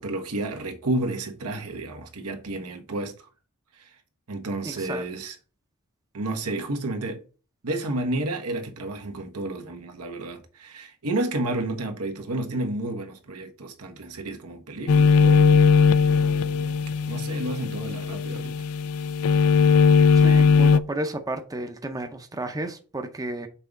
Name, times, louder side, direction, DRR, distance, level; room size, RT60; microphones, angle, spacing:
voice 1, 0.0-3.3 3.7-4.0 4.3-5.3 6.1-7.2 7.6-15.8 17.1-18.6, right 2 dB, 85° right, 1.2 m, -31 dB
voice 2, 4.6-5.0 20.1-23.5, right 1 dB, 15° right, 0.6 m, -32 dB
sound 1, 14.9-20.8, left 5 dB, 70° left, 0.4 m, -19 dB
5.7 x 3.6 x 5.2 m
head